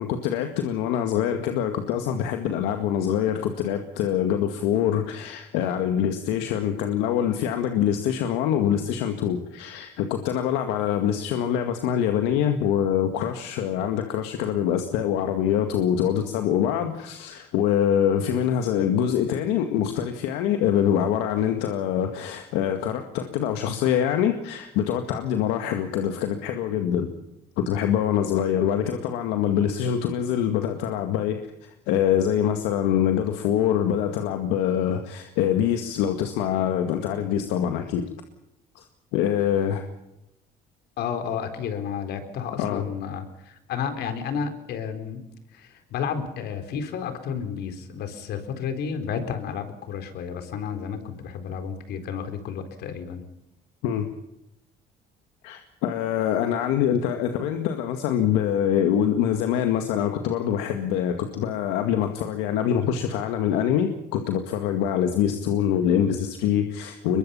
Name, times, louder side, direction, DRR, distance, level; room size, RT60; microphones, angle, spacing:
voice 1, 0.0-27.1 27.6-38.0 38.8-38.9 39.1-39.9 42.6-42.8 53.8-54.1 55.4-67.2, left 9 dB, 90° left, 6 dB, 2.0 m, -24 dB
voice 2, 41.0-45.2 45.5-53.2, left 7 dB, 70° left, 8 dB, 4.1 m, -32 dB
22.5 x 22.5 x 5.7 m, 0.86 s
supercardioid pair, 90°, 17 cm